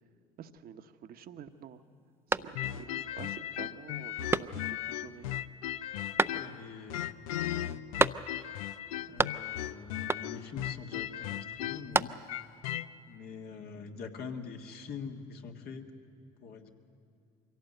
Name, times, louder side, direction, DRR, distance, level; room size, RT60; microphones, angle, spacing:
voice 1, 0.4-1.8 2.3-5.3, right 8 dB, 55° right, 9 dB, 1.0 m, -48 dB
sound 1, 2.3-3.0 3.4-3.5 4.3-4.9 6.2-6.8 8.0-8.6 8.8-9.7 10.1-10.6 11.6-12.5, right 3 dB, 15° right, 0.5 m, -31 dB
sound 2, 2.6-6.6 6.9-12.9, left 12 dB, 85° left, 0.5 m, -37 dB
voice 2, 6.3-7.0 7.6-7.8 9.1-12.2 13.1-15.9 16.4-16.7, left 5 dB, 60° left, 4 dB, 1.8 m, -44 dB
24.0 x 17.0 x 8.0 m, 2.7 s
hypercardioid pair, 60°, 18 cm